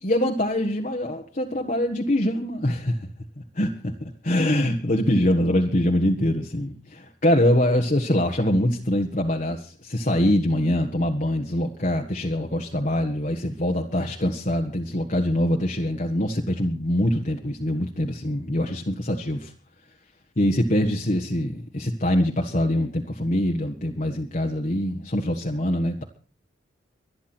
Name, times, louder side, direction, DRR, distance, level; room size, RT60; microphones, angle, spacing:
voice 1, 0.0-3.1 3.4-19.5 20.4-26.0, left 1 dB, 40° left, 1 dB, 1.5 m, -24 dB
24.0 x 9.7 x 4.4 m, 0.38 s
head